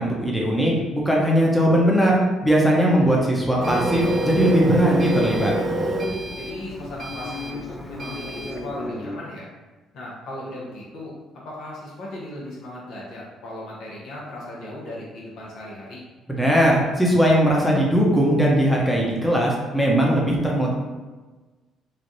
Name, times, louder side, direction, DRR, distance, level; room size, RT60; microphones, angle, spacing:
voice 1, 0.0-5.5 16.3-20.7, equal, 5° left, -3 dB, 0.7 m, -19 dB
sound 1, 3.6-9.2, left 2 dB, 20° left, 0.4 m, -33 dB
Printer, 3.6-8.6, right 2 dB, 45° right, 0.4 m, -28 dB
voice 2, 6.4-9.5 9.9-16.0, left 1 dB, 75° left, -5 dB, 0.9 m, -37 dB
3.2 x 2.4 x 2.6 m, 1.3 s
supercardioid pair, 75°, 0 cm